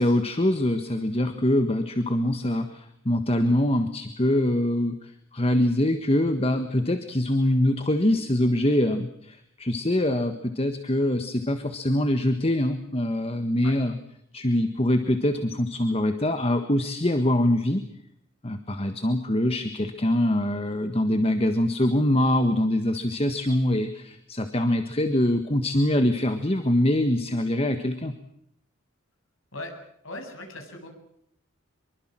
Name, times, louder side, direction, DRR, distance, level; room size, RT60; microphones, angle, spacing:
voice 1, 0.0-13.9 14.3-17.8 18.4-28.1, left 1 dB, 30° left, 8 dB, 1.5 m, -24 dB
voice 2, 30.0-30.9, left 2 dB, 80° left, 4 dB, 7.9 m, -38 dB
25.5 x 23.5 x 7.6 m, 0.73 s
head